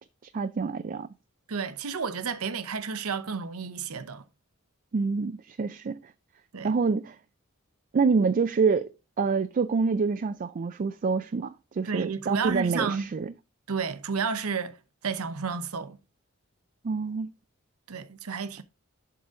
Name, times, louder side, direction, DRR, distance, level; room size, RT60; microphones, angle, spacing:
voice 1, 0.3-1.1 4.9-6.1 6.6-7.2 7.9-8.9 9.2-13.3 16.8-17.3, right 5 dB, 40° right, 0.4 m, -26 dB
voice 2, 1.5-4.2 6.5-6.7 11.8-13.1 13.7-14.8 15.0-16.0 17.9-18.6, right 5 dB, 80° right, 0.8 m, -31 dB
11.0 x 3.8 x 3.7 m
head